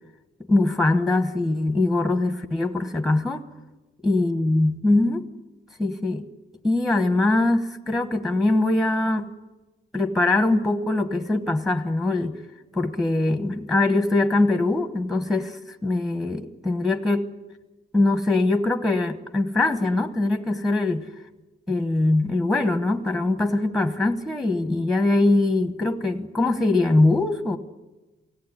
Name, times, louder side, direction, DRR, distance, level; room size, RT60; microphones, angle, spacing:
voice 1, 0.5-3.5 4.0-5.2 5.8-6.2 6.6-9.3 9.9-12.4 12.7-17.3 17.9-21.1 21.7-27.6, left 2 dB, ahead, 8 dB, 1.1 m, -22 dB
24.0 x 17.0 x 9.9 m, 1.1 s
wide cardioid pair, 160°, 19 cm